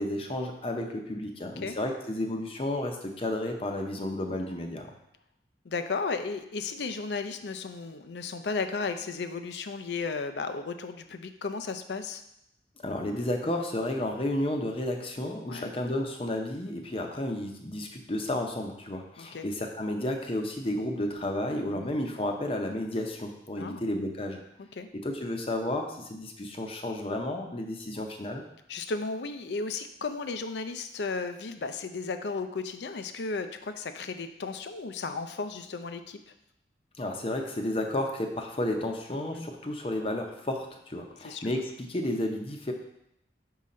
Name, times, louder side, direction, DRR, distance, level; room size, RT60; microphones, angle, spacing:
voice 1, 0.0-4.9 12.8-24.4 24.9-28.4 37.0-42.7, left 1 dB, 30° left, 3 dB, 0.6 m, -32 dB
voice 2, 5.6-12.2 15.5-15.7 19.2-19.5 21.7-21.9 23.6-23.8 24.8-24.9 28.7-36.3 39.3-39.5 41.2-41.4, left 4 dB, 80° left, 9 dB, 0.5 m, -34 dB
6.1 x 3.9 x 4.2 m, 0.81 s
head